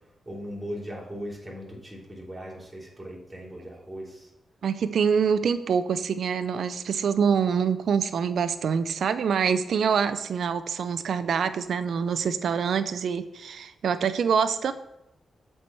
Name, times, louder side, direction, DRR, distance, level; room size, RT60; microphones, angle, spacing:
voice 1, 0.2-4.3, equal, 15° right, -4 dB, 3.1 m, -38 dB
voice 2, 4.6-14.7, right 6 dB, 80° right, 11 dB, 0.4 m, -25 dB
7.6 x 4.4 x 5.4 m, 0.88 s
cardioid pair, 65°, 0 cm